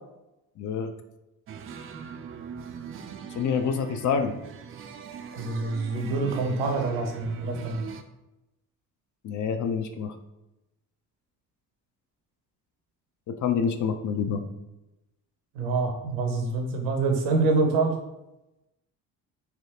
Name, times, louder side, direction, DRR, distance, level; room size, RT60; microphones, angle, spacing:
voice 1, 0.6-0.9 3.3-4.3 9.2-10.1 13.3-14.4, left 6 dB, 40° left, 8 dB, 0.5 m, -27 dB
sound 1, 1.5-8.0, right 7 dB, 30° right, 0.3 m, -41 dB
voice 2, 5.3-7.8 15.6-17.9, right 3 dB, 80° right, 3 dB, 0.7 m, -26 dB
3.4 x 2.8 x 2.8 m, 0.94 s
hypercardioid pair, 50°, 47 cm